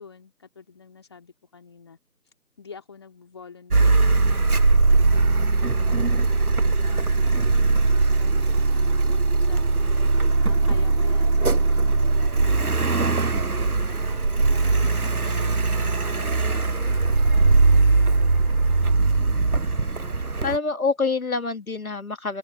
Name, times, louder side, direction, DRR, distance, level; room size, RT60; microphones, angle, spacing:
voice 1, 0.0-2.0 2.6-12.5 12.9-18.3, left 5 dB, 15° left, 3.0 m, -47 dB
Car, 3.7-20.6, right 3 dB, 60° right, 1.3 m, -20 dB
sound 1, 13.7-18.9, right 3 dB, 30° right, 3.6 m, -47 dB
voice 2, 19.7-22.4, left 4 dB, 60° left, 2.5 m, -27 dB
open air
figure-of-eight pair, 165°, 48 cm